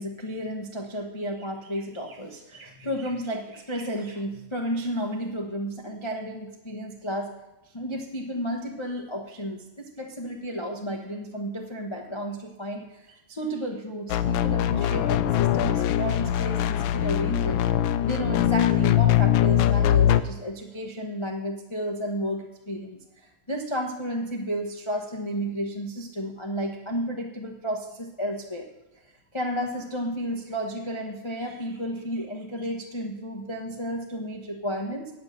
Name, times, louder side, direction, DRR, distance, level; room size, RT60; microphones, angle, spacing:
voice 1, 0.0-7.3 7.7-17.6 18.0-23.0 23.5-28.7 29.3-35.1, equal, 35° left, 1 dB, 0.4 m, -32 dB
sound 1, 14.1-20.2, left 11 dB, 75° left, 1.3 m, -22 dB
9.2 x 8.6 x 6.5 m, 0.96 s
omnidirectional pair, 2.4 m